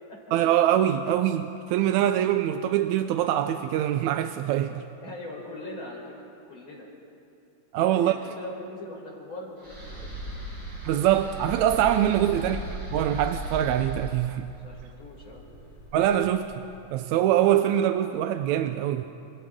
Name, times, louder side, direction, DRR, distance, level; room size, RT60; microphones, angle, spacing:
voice 1, 0.3-4.8 7.7-8.2 10.8-14.5 15.9-16.5 16.9-19.0, right 11 dB, 80° right, 8 dB, 1.8 m, -24 dB
voice 2, 5.0-6.9 7.7-10.2 12.2-12.5 14.4-15.4, left 1 dB, 35° left, -2 dB, 4.7 m, -41 dB
sound 1, 9.6-16.8, right 1 dB, 30° right, 7.6 m, -38 dB
30.0 x 28.0 x 3.7 m, 2.7 s
omnidirectional pair, 3.7 m